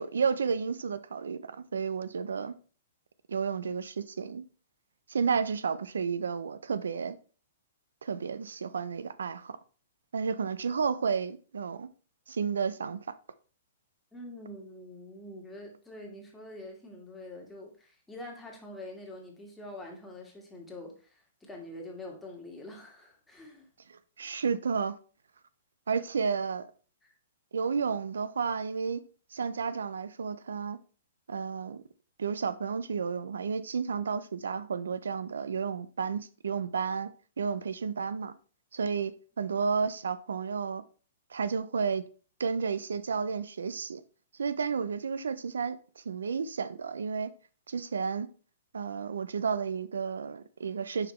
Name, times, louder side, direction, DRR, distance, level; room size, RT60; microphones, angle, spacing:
voice 1, 0.0-2.6 3.3-4.4 5.1-7.2 8.0-9.6 10.1-11.9 12.3-13.0 23.9-25.0 25.9-26.6 27.5-29.0 29.3-30.8 31.3-31.8 32.2-37.1 37.4-38.3 38.7-40.8 41.3-42.0 42.4-44.0 44.3-47.3 47.7-48.3 48.7-51.1, right 6 dB, 90° right, 0.5 m, -32 dB
voice 2, 14.1-23.7 26.2-26.4 27.0-27.1, left 1 dB, 5° left, 1.6 m, -45 dB
5.6 x 3.9 x 4.2 m
hypercardioid pair, 140°, 0 cm